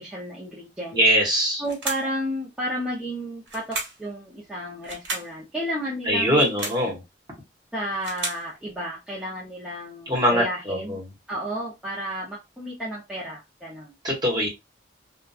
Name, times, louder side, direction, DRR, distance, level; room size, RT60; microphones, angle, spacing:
voice 1, 0.0-1.0 1.3-6.4 6.7-6.9 7.7-11.0 11.3-13.9, equal, 5° right, 0.6 m, -32 dB
voice 2, 0.9-1.6 6.1-7.0 10.1-11.0 14.0-14.5, equal, 25° right, 1.1 m, -22 dB
sound 1, 1.6-2.2 3.5-4.1 4.8-5.3 6.3-6.9 7.7-8.5, right 3 dB, 75° right, 1.2 m, -33 dB
2.8 x 2.2 x 2.3 m
head